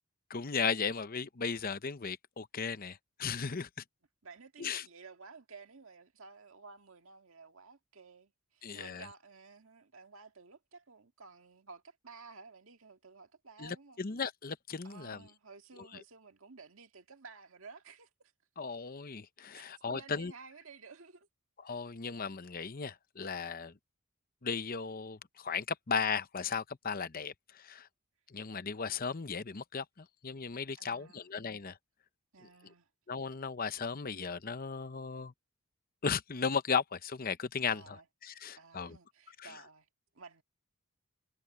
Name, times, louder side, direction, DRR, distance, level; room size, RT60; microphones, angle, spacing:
voice 1, 0.3-3.7 4.6-4.8 8.6-9.0 13.6-15.2 18.6-20.3 21.6-23.7 24.4-27.3 27.6-27.9 28.3-31.8 33.1-35.3 36.0-38.0 38.2-39.0 39.4-39.5, left 5 dB, 40° left, 0.8 m, -36 dB
voice 2, 4.2-14.0 14.8-18.3 19.5-21.3 30.8-31.3 32.3-32.9 37.7-39.9 40.1-40.4, right 4 dB, 70° right, 1.9 m, -54 dB
head